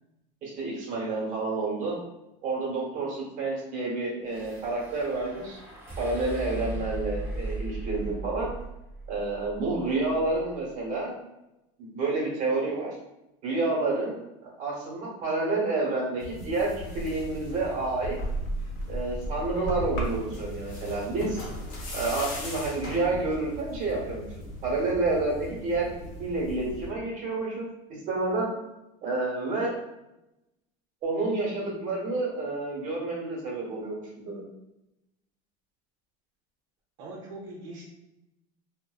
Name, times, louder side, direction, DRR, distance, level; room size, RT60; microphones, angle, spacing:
voice 1, 0.4-2.0 2.4-5.6 6.0-8.5 9.1-11.2 11.8-12.9 13.4-18.2 18.9-21.4 21.9-24.3 24.6-25.9 26.2-28.5 29.0-29.7 31.0-34.4, right 3 dB, 45° right, -3 dB, 1.0 m, -29 dB
sound 1, 4.3-10.6, right 2 dB, 15° right, 0.9 m, -37 dB
sound 2, 16.2-26.9, equal, 60° left, 0.7 m, -36 dB
voice 2, 37.0-37.8, right 2 dB, 75° right, -3 dB, 0.7 m, -42 dB
2.5 x 2.1 x 2.3 m, 0.93 s
supercardioid pair, 145°, 18 cm